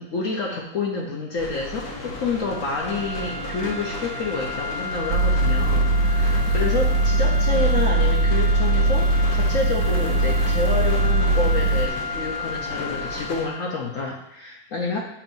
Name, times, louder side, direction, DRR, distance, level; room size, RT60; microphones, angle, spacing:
voice 1, 0.0-15.0, left 3 dB, 60° left, -1 dB, 0.8 m, -29 dB
sound 1, 1.4-13.4, left 1 dB, 80° left, 1.7 m, -35 dB
sound 2, 2.4-13.9, left 3 dB, 55° right, 0.8 m, -33 dB
sound 3, 5.1-11.9, right 2 dB, 75° right, 1.2 m, -20 dB
7.1 x 2.6 x 5.3 m, 0.83 s
omnidirectional pair, 2.0 m